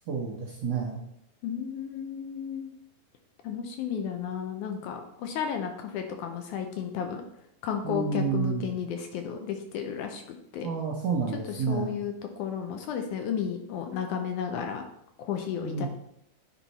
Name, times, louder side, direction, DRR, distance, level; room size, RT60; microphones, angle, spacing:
voice 1, 0.1-1.0 7.8-8.6 10.6-11.9 15.6-15.9, right 5 dB, 70° right, -2 dB, 1.5 m, -29 dB
voice 2, 1.4-2.7 3.4-7.2 7.6-10.7 11.5-14.8 15.2-15.9, left 8 dB, 75° left, 5 dB, 2.0 m, -33 dB
10.0 x 4.4 x 4.1 m, 0.76 s
omnidirectional pair, 3.9 m